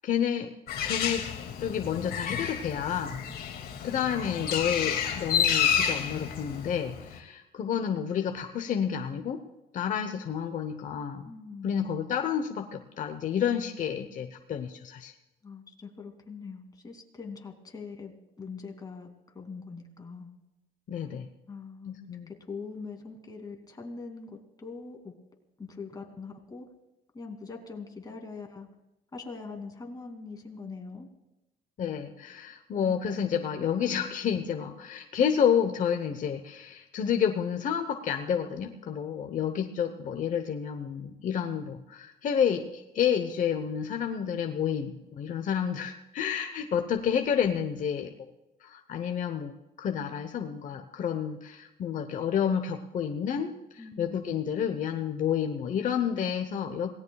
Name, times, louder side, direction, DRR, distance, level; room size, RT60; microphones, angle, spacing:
voice 1, 0.0-0.5 0.8-1.2 1.6-3.2 3.8-9.4 9.7-11.3 11.6-15.1 20.9-21.3 21.9-22.3 31.8-48.1 48.6-56.9, left 8 dB, 50° left, 6 dB, 1.0 m, -30 dB
Bird, 0.7-7.2, left 8 dB, 65° left, 2.3 m, -30 dB
voice 2, 11.2-11.9 15.4-20.3 21.5-25.1 25.6-26.7 27.1-28.7 29.1-31.1 32.7-33.1 53.8-54.3, left 4 dB, 20° left, 2 dB, 2.6 m, -42 dB
27.0 x 18.0 x 2.4 m, 0.95 s
cardioid pair, 110°, 17 cm